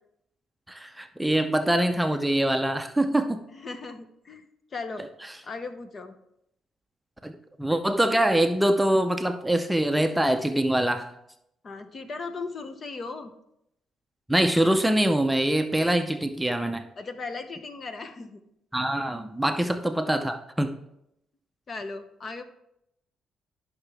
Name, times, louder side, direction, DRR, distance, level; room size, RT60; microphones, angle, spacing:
voice 1, 0.7-3.4 7.2-11.1 14.3-16.8 18.7-20.7, right 1 dB, 5° right, 7 dB, 0.6 m, -24 dB
voice 2, 3.5-5.1 5.4-6.1 11.6-13.3 17.0-18.4 21.7-22.4, left 3 dB, 40° left, 8 dB, 0.9 m, -37 dB
11.5 x 5.8 x 3.4 m, 0.79 s
cardioid pair, 90°, 0 cm